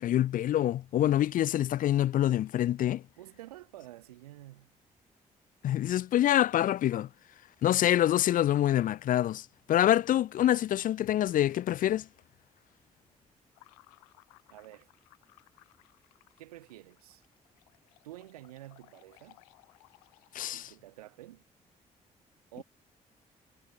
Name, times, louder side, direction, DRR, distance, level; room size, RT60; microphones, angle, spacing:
voice 1, 0.0-3.0 5.6-7.1 7.6-12.0 20.3-20.6, left 12 dB, 45° left, 0.5 m, -26 dB
voice 2, 3.2-4.7 14.5-14.9 16.4-17.2 18.0-19.4 20.5-21.4 22.5-22.6, right 15 dB, 80° right, 1.2 m, -49 dB
sound 1, 13.5-20.8, left 28 dB, 75° left, 2.0 m, -62 dB
figure-of-eight pair, 40°, 19 cm